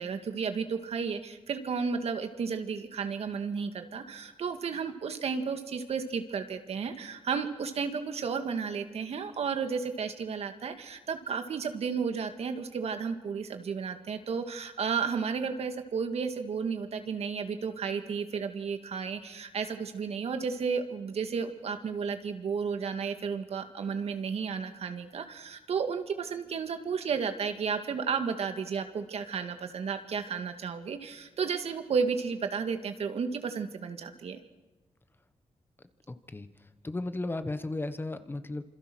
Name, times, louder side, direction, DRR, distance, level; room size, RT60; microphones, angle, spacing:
voice 1, 0.0-34.4, right 6 dB, 80° right, 7 dB, 2.0 m, -33 dB
voice 2, 36.8-38.6, left 2 dB, 20° left, 10 dB, 1.2 m, -34 dB
27.0 x 26.5 x 6.3 m, 1.1 s
wide cardioid pair, 145°, 10 cm